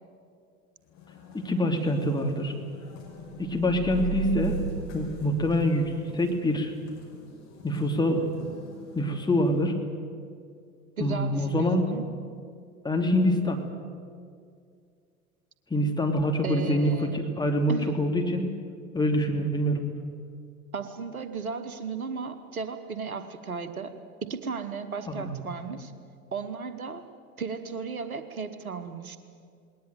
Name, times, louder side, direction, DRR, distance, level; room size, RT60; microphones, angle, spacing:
sound 1, 0.8-9.7, left 4 dB, 40° left, 5.9 m, -47 dB
voice 1, 1.3-2.5 3.4-4.6 4.9-6.7 7.6-8.3 8.9-9.7 11.0-11.8 12.8-13.6 15.7-18.5 18.9-19.8 25.1-25.3, left 1 dB, 10° left, 2 dB, 3.0 m, -25 dB
sound 2, 3.4-6.0, right 8 dB, 45° right, 2.1 m, -34 dB
voice 2, 11.0-12.1 16.4-17.2 17.7-18.0 20.7-23.9 24.2-25.9 26.3-27.0 27.4-29.2, right 5 dB, 85° right, 10 dB, 1.3 m, -35 dB
19.5 x 19.5 x 9.2 m, 2.2 s
figure-of-eight pair, 75°, 42 cm